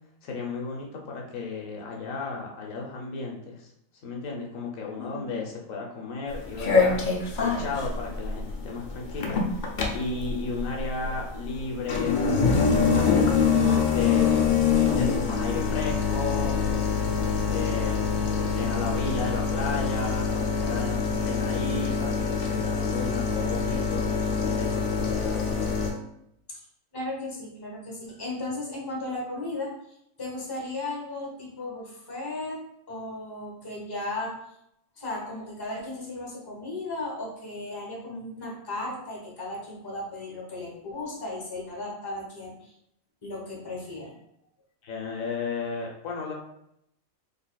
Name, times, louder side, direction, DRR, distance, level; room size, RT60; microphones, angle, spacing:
voice 1, 0.2-3.7 4.0-7.1 7.4-14.5 14.8-16.6 17.2-18.0 18.4-25.6 44.8-46.3, left 4 dB, 75° left, 0 dB, 1.1 m, -34 dB
voice 2, 5.0-5.3 26.5-26.6 26.9-29.7 30.2-32.6 32.9-34.4 35.0-42.7 43.2-44.2, left 2 dB, 20° left, -3 dB, 0.9 m, -35 dB
sound 1, 6.3-25.9, left 5 dB, 55° left, 0.5 m, -25 dB
4.0 x 3.2 x 2.2 m, 0.76 s
omnidirectional pair, 1.4 m